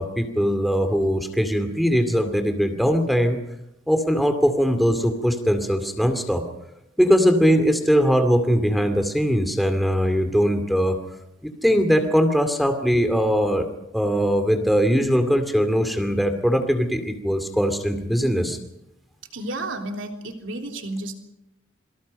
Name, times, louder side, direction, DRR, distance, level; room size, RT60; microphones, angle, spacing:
voice 1, 0.0-3.4 3.9-6.4 7.0-11.0 11.4-13.6 13.9-18.6, equal, ahead, 7 dB, 2.3 m, -21 dB
voice 2, 19.3-21.2, right 2 dB, 65° right, 3 dB, 3.5 m, -31 dB
27.5 x 24.5 x 5.3 m, 0.87 s
head